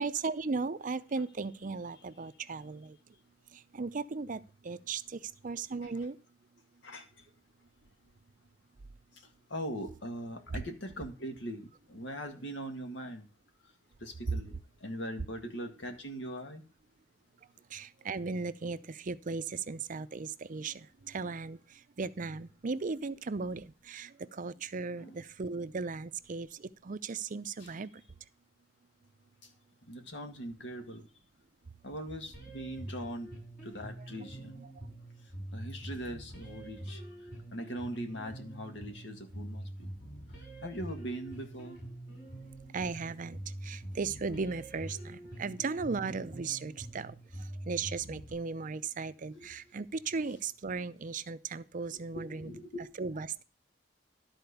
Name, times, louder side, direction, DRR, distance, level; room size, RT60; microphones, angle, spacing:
voice 1, 0.0-3.0 3.5-6.2 10.5-10.6 17.7-21.6 22.0-27.9 34.0-34.1 34.6-34.7 42.7-47.2 47.7-52.5 53.0-53.4, right 4 dB, 45° right, 0.5 m, -37 dB
voice 2, 9.5-13.2 14.0-14.5 14.8-16.6 25.0-25.2 27.6-27.7 29.9-31.1 31.8-33.3 33.7-34.5 35.5-37.0 37.5-39.6 40.6-41.8 49.4-49.5 51.9-52.9, equal, 75° left, 1.9 m, -41 dB
sound 1, 32.3-48.3, right 1 dB, 55° left, 7.1 m, -45 dB
12.5 x 4.4 x 6.9 m
head